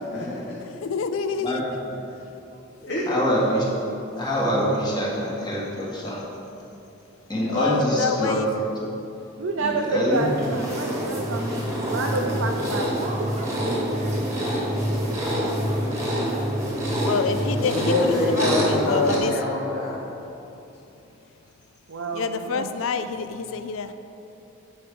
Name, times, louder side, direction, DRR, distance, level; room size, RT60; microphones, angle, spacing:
voice 1, 0.0-0.7 2.8-3.2 17.7-20.0, left 2 dB, 55° left, -5 dB, 1.0 m, -25 dB
voice 2, 0.7-1.6 7.5-8.5 17.0-19.3 22.1-23.9, left 5 dB, 75° left, 10 dB, 0.4 m, -27 dB
voice 3, 1.4-1.9 3.1-3.6 4.2-6.2 7.3-8.4 9.6-10.5, equal, 20° left, -5 dB, 1.6 m, -25 dB
voice 4, 9.4-13.1 17.1-17.4 21.9-22.7, right 3 dB, 90° right, 1 dB, 0.6 m, -29 dB
sound 1, 10.1-19.2, equal, 15° right, 1.4 m, -26 dB
voice 5, 12.8-14.1 14.4-16.5, right 1 dB, 30° right, -1 dB, 1.0 m, -41 dB
8.3 x 4.7 x 5.3 m, 2.9 s
head